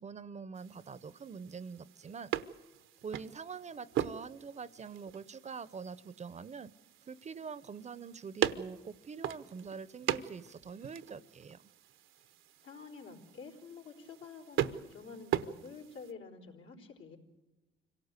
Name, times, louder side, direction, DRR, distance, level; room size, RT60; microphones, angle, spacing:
voice 1, 0.0-2.3 3.0-6.7 7.1-11.6, right 5 dB, 35° right, 18 dB, 0.7 m, -45 dB
sound 1, 0.5-16.1, right 11 dB, 80° right, 0.9 m, -40 dB
voice 2, 12.6-17.2, left 4 dB, 80° left, 0 dB, 4.3 m, -49 dB
25.5 x 17.5 x 8.2 m, 1.1 s
cardioid pair, 90°, 20 cm